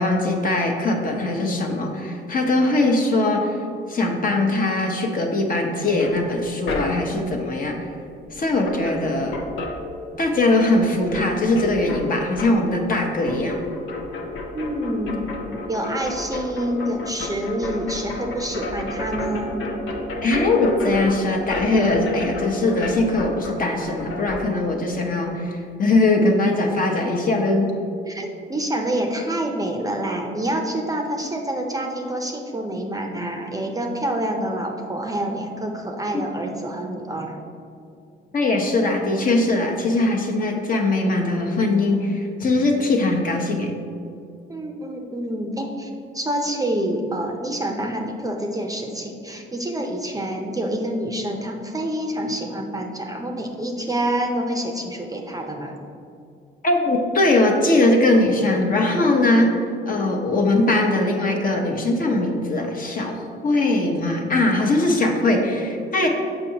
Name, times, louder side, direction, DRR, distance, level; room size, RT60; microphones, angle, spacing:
voice 1, 0.0-3.6 3.9-7.9 8.3-9.4 10.2-13.6 20.2-27.7 36.1-36.2 38.3-43.7 56.6-59.6 59.9-66.1, left 2 dB, 45° left, 2 dB, 1.0 m, -21 dB
sound 1, 6.0-7.3 8.3-8.4 8.6-10.4 10.7-24.4, left 2 dB, 90° left, 0.8 m, -31 dB
voice 2, 14.5-15.3 15.7-19.6 28.1-37.4 44.5-55.8 65.2-65.4, right 1 dB, 15° right, 2 dB, 0.6 m, -27 dB
6.8 x 5.6 x 2.9 m, 2.5 s
cardioid pair, 90°, 20 cm